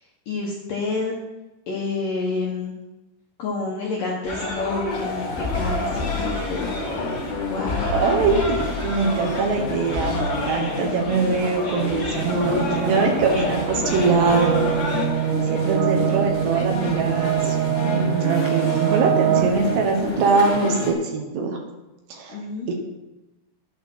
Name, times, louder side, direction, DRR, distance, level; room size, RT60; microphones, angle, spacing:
voice 1, 0.3-1.2 1.7-2.7 3.4-8.1 15.6-16.1 22.3-22.7, left 3 dB, 70° left, -2 dB, 2.1 m, -29 dB
sound 1, 4.2-15.1, left 2 dB, 35° left, 1.9 m, -29 dB
sound 2, 4.9-20.9, left 3 dB, 50° left, 3.7 m, -30 dB
voice 2, 7.9-14.6 15.5-21.6 22.1-22.4 22.7-22.8, right 4 dB, 70° right, 3 dB, 3.0 m, -23 dB
sound 3, 12.1-19.9, right 11 dB, 85° right, 3.4 m, -24 dB
11.5 x 8.4 x 6.2 m, 1.0 s
omnidirectional pair, 5.7 m